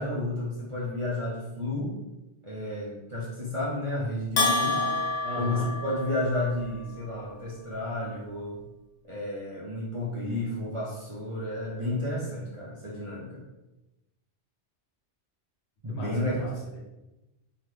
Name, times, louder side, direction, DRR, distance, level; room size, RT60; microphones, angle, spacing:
voice 1, 0.0-2.0 2.4-4.8 5.3-8.6 9.0-13.4 15.8-16.5, left 1 dB, 35° right, -7 dB, 0.5 m, -32 dB
Bell, 4.4-6.5, left 3 dB, 50° left, 0.4 m, -28 dB
voice 2, 5.2-5.7 15.9-16.8, right 2 dB, 65° left, -4 dB, 1.1 m, -37 dB
2.8 x 2.4 x 3.3 m, 0.99 s
omnidirectional pair, 1.2 m